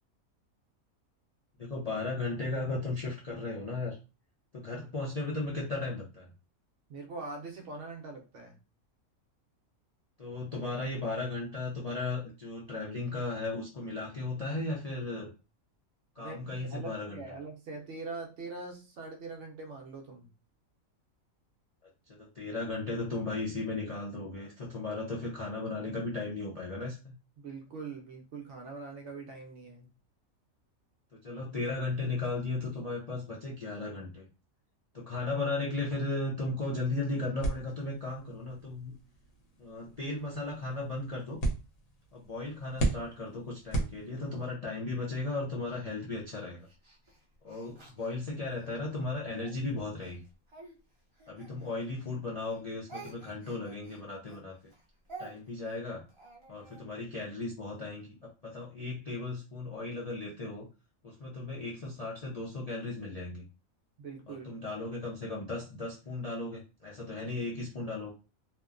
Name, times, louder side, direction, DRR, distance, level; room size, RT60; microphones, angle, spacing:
voice 1, 1.6-4.0 4.5-6.3 10.2-15.3 16.2-17.2 22.1-27.1 31.1-34.2 34.9-38.9 39.6-41.4 42.1-46.7 47.4-50.2 51.3-54.5 55.2-56.0 56.5-60.7 61.0-63.4 64.3-68.1, left 2 dB, 50° left, -5 dB, 0.4 m, -36 dB
voice 2, 6.9-8.6 16.2-20.3 27.4-29.9 64.0-64.5, right 3 dB, 65° right, 2 dB, 0.9 m, -43 dB
sound 1, 37.4-44.5, right 2 dB, 70° left, 1.1 m, -37 dB
Speech, 45.6-48.8 49.3-52.1 52.4-56.8, right 3 dB, 30° right, 0.6 m, -51 dB
2.8 x 2.1 x 2.4 m, 0.31 s
omnidirectional pair, 1.5 m